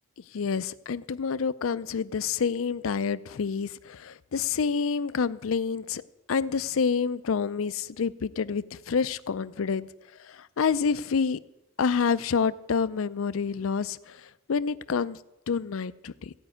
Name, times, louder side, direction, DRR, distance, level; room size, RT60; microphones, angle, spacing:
voice 1, 0.3-6.0 6.3-9.9 10.2-11.4 11.8-15.2 15.5-16.3, left 5 dB, 75° left, 16 dB, 0.5 m, -28 dB
15.5 x 5.4 x 9.1 m, 0.96 s
head